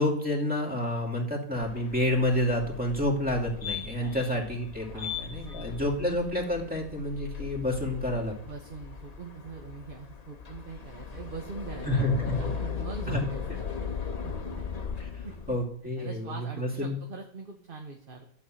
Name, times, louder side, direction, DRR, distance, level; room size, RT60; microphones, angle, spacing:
voice 1, 0.0-8.4 11.9-12.5 13.1-13.3 15.0-17.0, left 1 dB, 5° right, -1 dB, 2.4 m, -29 dB
sound 1, 1.5-15.6, left 7 dB, 35° left, 0.9 m, -38 dB
voice 2, 4.9-6.0 8.4-14.0 14.2-14.3 15.2-15.4 16.0-18.2, right 4 dB, 40° right, 3 dB, 1.2 m, -43 dB
11.5 x 5.7 x 7.6 m, 0.62 s
omnidirectional pair, 1.5 m